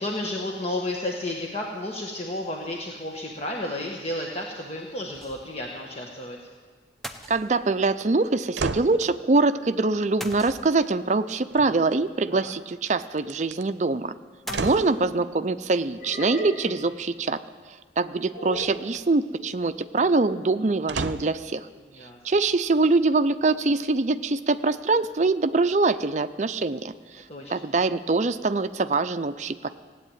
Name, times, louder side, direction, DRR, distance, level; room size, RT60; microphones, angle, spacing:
voice 1, 0.0-6.4 12.3-12.5 14.5-14.8 21.9-22.2 27.3-27.7, left 1 dB, 35° left, -1 dB, 1.3 m, -32 dB
sound 1, 5.1-5.7 6.0-6.1 7.0-7.9 10.2-11.1 14.5-15.4, equal, ahead, 0.7 m, -41 dB
voice 2, 7.3-14.1 14.6-17.4 18.0-21.7 22.2-27.2 27.5-29.7, right 3 dB, 40° right, 10 dB, 0.5 m, -24 dB
sound 2, 8.6-9.0 11.5-12.2 13.2-13.6 14.5-15.0 18.5-19.1 20.9-21.4 22.1-22.2, right 4 dB, 85° right, 0.7 m, -32 dB
sound 3, 14.8-15.2 16.0-16.8 18.3-18.8, equal, 65° left, 6.3 m, -38 dB
16.0 x 8.6 x 9.1 m, 1.5 s
head